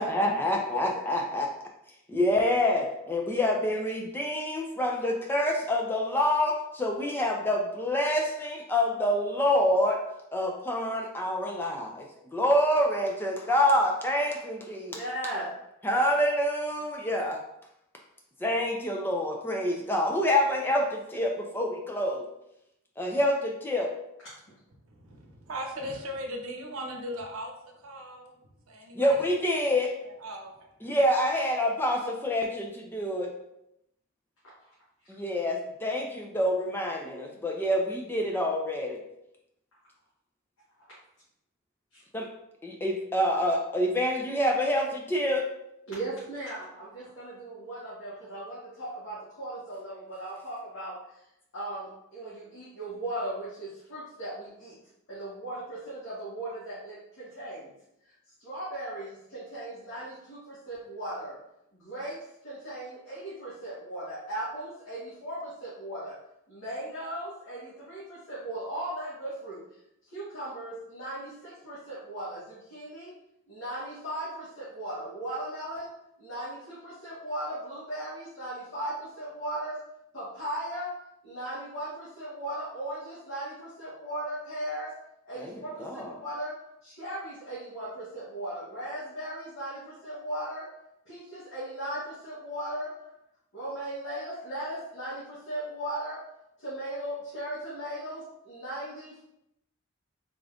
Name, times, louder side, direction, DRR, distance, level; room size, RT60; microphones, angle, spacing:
voice 1, 0.0-1.5 2.1-10.0 10.3-15.0 15.8-17.4 18.4-22.2 23.0-23.9 29.0-30.0 30.8-33.3 35.1-39.0 42.1-42.3 42.6-45.5 85.4-86.2, left 1 dB, 10° left, 1 dB, 0.4 m, -27 dB
voice 2, 14.8-15.4 41.9-42.0 45.9-50.9 51.5-54.7 55.1-57.7 58.4-61.4 61.7-62.2 62.4-66.1 66.5-69.6 70.1-73.1 73.5-75.9 76.2-79.8 80.1-80.9 81.2-84.9 85.2-86.5 86.8-90.7 91.0-92.9 93.5-96.2 96.6-99.2, right 1 dB, 65° left, -10 dB, 1.3 m, -37 dB
voice 3, 24.9-27.5 27.8-28.3 28.7-29.2 30.0-30.5, equal, 85° right, 2 dB, 0.7 m, -38 dB
3.8 x 2.4 x 3.4 m, 0.82 s
head